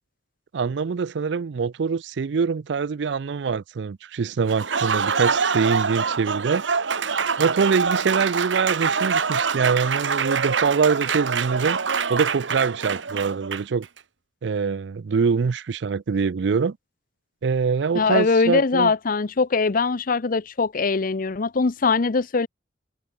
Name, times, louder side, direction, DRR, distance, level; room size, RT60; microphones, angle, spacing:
voice 1, 0.5-6.6 7.4-11.8 12.1-13.9 14.4-16.8 17.4-18.9, right 5 dB, 65° right, 0.4 m, -24 dB
Applause, 4.5-13.8, right 5 dB, 90° right, 1.2 m, -25 dB
voice 2, 17.9-22.5, left 4 dB, 50° left, 0.7 m, -22 dB
head